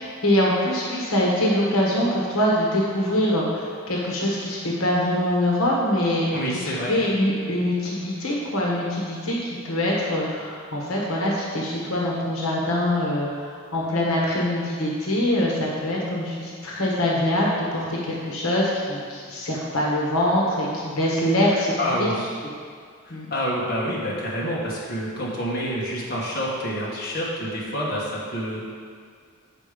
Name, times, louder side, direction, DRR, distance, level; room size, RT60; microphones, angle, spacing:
voice 1, 0.0-22.1 23.1-23.3, left 1 dB, 85° left, -3 dB, 1.3 m, -24 dB
voice 2, 6.3-6.9 21.8-22.3 23.0-28.6, equal, 45° left, -6 dB, 1.5 m, -28 dB
7.5 x 4.9 x 5.1 m, 2.1 s
head